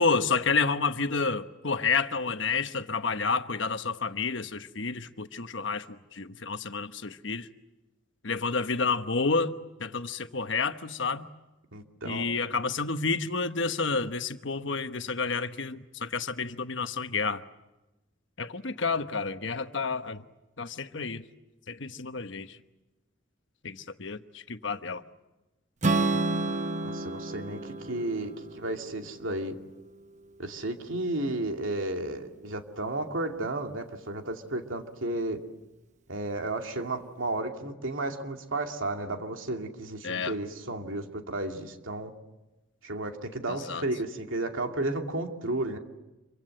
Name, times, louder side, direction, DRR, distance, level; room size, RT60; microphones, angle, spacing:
voice 1, 0.0-7.5 8.2-9.5 9.8-11.3 12.0-17.4 18.4-20.2 20.6-21.2 21.7-22.6 23.6-25.0 40.0-40.4 43.5-43.8, left 4 dB, 65° left, 1.1 m, -30 dB
voice 2, 11.7-12.3 26.8-29.6 30.4-35.4 36.1-42.1 42.8-45.8, right 2 dB, 80° right, 2.5 m, -33 dB
Strum, 25.8-30.0, right 2 dB, 35° right, 1.0 m, -31 dB
27.5 x 24.5 x 7.8 m
head